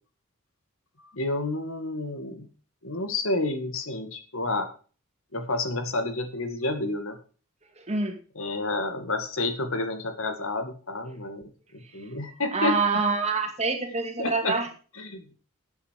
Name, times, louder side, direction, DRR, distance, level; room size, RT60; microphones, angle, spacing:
voice 1, 1.0-2.5 2.8-4.7 5.3-7.2 8.4-12.8 14.2-14.6 14.9-15.3, left 2 dB, 70° left, 8 dB, 2.0 m, -30 dB
voice 2, 7.8-8.2 12.5-14.7, right 4 dB, 30° right, 5 dB, 2.3 m, -26 dB
12.5 x 8.3 x 4.7 m, 0.38 s
head